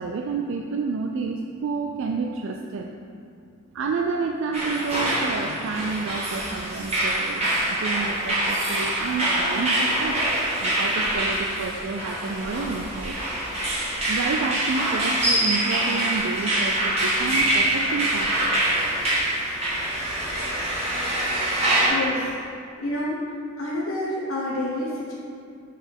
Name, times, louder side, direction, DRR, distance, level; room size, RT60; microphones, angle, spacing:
voice 1, 0.0-2.9 3.7-10.2 10.6-13.5 14.1-18.6, right 4 dB, 60° right, 2 dB, 0.4 m, -29 dB
sound 1, 4.5-21.9, right 1 dB, 30° right, 1.7 m, -25 dB
voice 2, 21.9-22.3 22.8-23.2 23.6-25.2, left 1 dB, 70° left, -6 dB, 1.0 m, -28 dB
6.4 x 4.0 x 5.3 m, 2.5 s
head